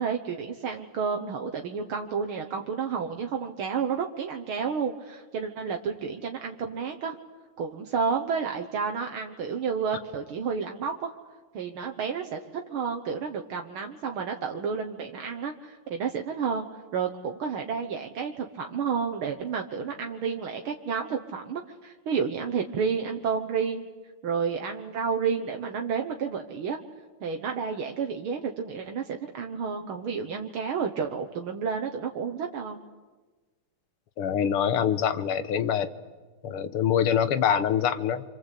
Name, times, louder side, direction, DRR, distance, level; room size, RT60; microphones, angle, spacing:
voice 1, 0.0-7.2 7.6-11.1 11.5-12.4 12.7-16.7 16.9-23.9 24.2-26.8 27.2-32.8, right 6 dB, 70° right, 3 dB, 2.1 m, -30 dB
voice 2, 34.2-35.9 36.4-38.3, left 8 dB, 80° left, 12 dB, 2.0 m, -25 dB
26.5 x 26.5 x 8.4 m, 1.3 s
omnidirectional pair, 2.4 m